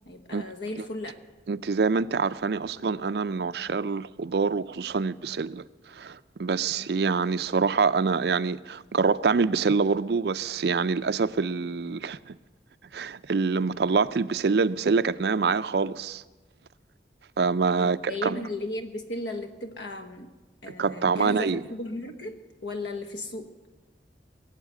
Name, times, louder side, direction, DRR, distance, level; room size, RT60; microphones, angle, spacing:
voice 1, 0.0-1.2 6.6-6.9 17.8-20.3 20.6-22.4 22.6-23.5, left 1 dB, 85° left, 1.5 m, -35 dB
voice 2, 1.5-5.6 5.9-12.3 12.9-16.2 17.4-18.4 20.8-21.6, right 4 dB, 65° right, 0.4 m, -25 dB
21.5 x 8.2 x 8.2 m
head